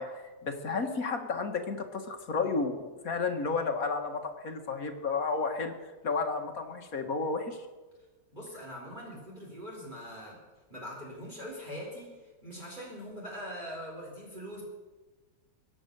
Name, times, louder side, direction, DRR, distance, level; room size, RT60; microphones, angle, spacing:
voice 1, 0.0-5.7 6.0-7.7, left 4 dB, 55° left, 5 dB, 1.9 m, -32 dB
voice 2, 8.3-10.4 10.7-14.6, equal, 25° right, -3 dB, 4.3 m, -42 dB
24.0 x 8.8 x 6.7 m, 1.2 s
omnidirectional pair, 1.9 m